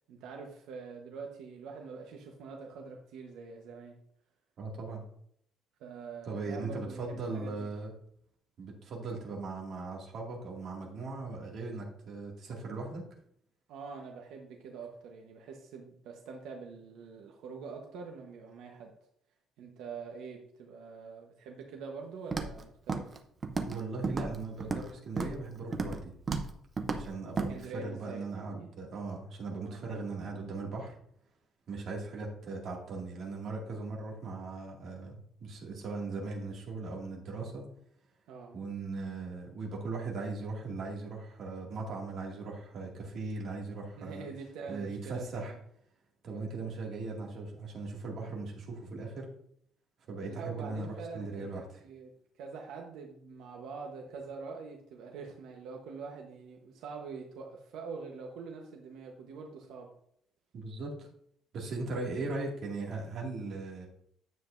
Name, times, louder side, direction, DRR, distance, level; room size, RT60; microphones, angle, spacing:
voice 1, 0.1-4.0 5.8-7.7 13.7-18.9 19.6-23.2 27.5-28.7 29.6-29.9 38.3-38.6 44.0-45.6 50.2-52.1 52.4-59.9, right 5 dB, 75° right, 1 dB, 1.1 m, -45 dB
voice 2, 4.6-5.0 6.2-7.9 8.6-13.0 23.5-26.1 26.9-31.0 31.7-37.7 38.5-44.3 44.7-45.5 46.2-49.3 50.1-51.8 60.5-61.1 61.5-63.9, right 3 dB, 45° right, -1 dB, 2.2 m, -39 dB
Walk footsteps, 22.3-22.6 22.9-23.2 23.4-23.8 24.0-24.9 25.2-25.4 25.7-26.0 26.3-26.5 26.8-27.0 27.4-27.5, right 4 dB, 25° right, 0.7 m, -33 dB
9.5 x 7.6 x 2.6 m, 0.68 s
cardioid pair, 175°, 0 cm